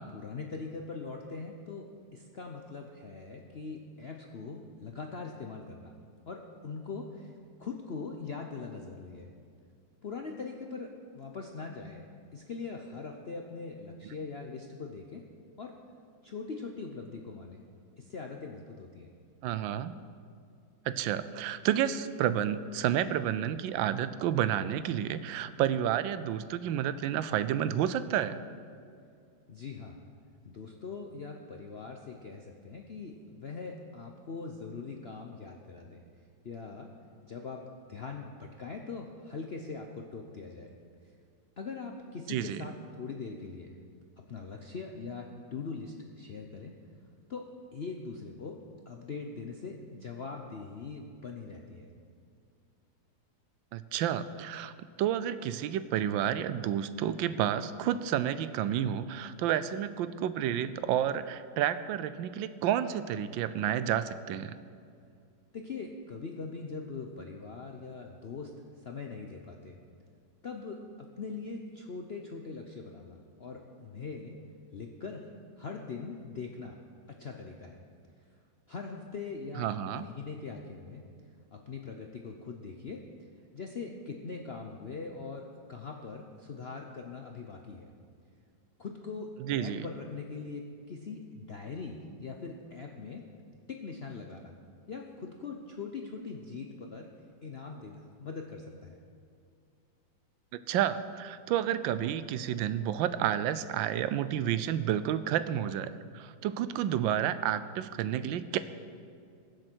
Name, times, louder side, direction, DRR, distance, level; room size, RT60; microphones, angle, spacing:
voice 1, 0.1-1.9 2.1-5.9 6.3-7.3 7.6-9.3 10.0-12.0 12.3-15.2 15.6-15.7 16.2-17.6 18.0-19.1 29.5-30.0 30.4-36.0 36.4-36.9 37.2-37.6 37.9-40.7 41.6-43.7 44.2-46.7 47.3-47.5 47.7-48.6 48.9-51.9 65.5-68.5 68.8-69.8 70.4-74.4 74.7-75.3 75.6-76.8 77.1-77.8 78.7-81.0 81.5-83.3 83.5-87.9 88.8-93.2 93.7-94.5 94.9-97.1 97.4-99.0, left 4 dB, 60° left, 2 dB, 0.6 m, -41 dB
voice 2, 19.4-19.9 20.9-28.4 42.3-42.6 53.7-54.7 55.0-64.5 79.6-80.1 89.4-89.9 100.7-108.6, right 10 dB, 85° right, 13 dB, 1.3 m, -30 dB
21.5 x 7.6 x 4.5 m, 2.3 s
omnidirectional pair, 2.1 m